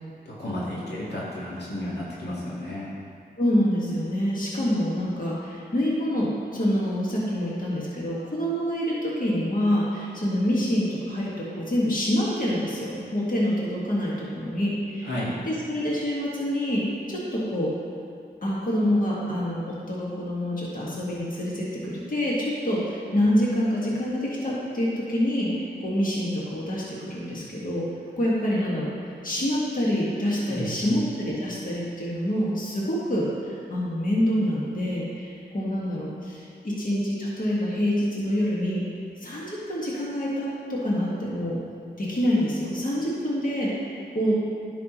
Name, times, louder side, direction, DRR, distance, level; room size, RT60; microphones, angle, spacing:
voice 1, 0.3-2.9 15.0-15.3 30.5-31.0, left 1 dB, 75° left, -7 dB, 1.9 m, -32 dB
voice 2, 3.4-15.1 15.5-17.7 18.4-27.9 28.2-38.9 39.2-41.6 42.0-44.3, equal, 50° left, -6 dB, 1.9 m, -26 dB
10.5 x 6.0 x 3.1 m, 2.3 s
cardioid pair, 50°, 18 cm